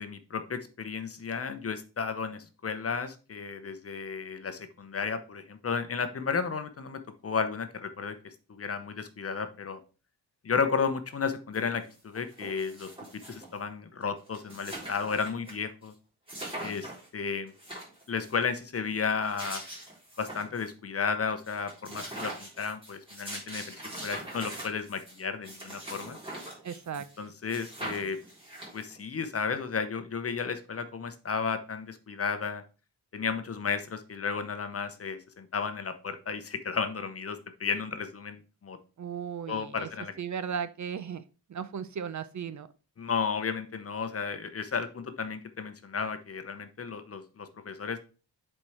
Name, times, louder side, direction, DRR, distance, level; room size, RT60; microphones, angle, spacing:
voice 1, 0.0-9.8 10.4-12.9 13.3-15.9 16.6-17.5 18.1-19.6 20.2-26.2 27.2-28.2 28.7-32.6 33.1-38.8 39.5-40.1 43.0-48.0, left 5 dB, 35° left, 10 dB, 0.8 m, -33 dB
sound 1, 11.5-11.6 11.9-13.6 14.0-14.1 14.3-15.5 15.8-15.9 16.3-17.1 17.5-18.4 19.0-20.7 21.1-21.2 21.4-27.2 27.5-29.0, right 1 dB, 15° right, 3.8 m, -42 dB
voice 2, 26.6-27.3 39.0-39.9 40.2-41.2 41.5-42.7, right 7 dB, 45° right, 13 dB, 0.6 m, -36 dB
7.4 x 4.5 x 4.9 m, 0.34 s
wide cardioid pair, 175°, 40 cm